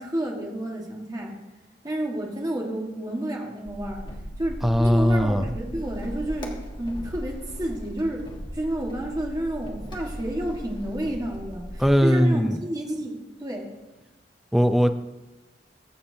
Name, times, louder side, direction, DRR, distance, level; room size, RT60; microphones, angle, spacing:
voice 1, 0.0-1.4 1.8-4.0 4.4-8.2 8.5-13.6, right 1 dB, 20° right, -1 dB, 1.6 m, -30 dB
sound 1, 3.6-11.9, equal, 25° left, 1.4 m, -37 dB
voice 2, 4.6-5.4 11.8-12.6 14.5-14.9, equal, ahead, 8 dB, 0.5 m, -19 dB
21.5 x 7.2 x 2.8 m, 1.1 s
head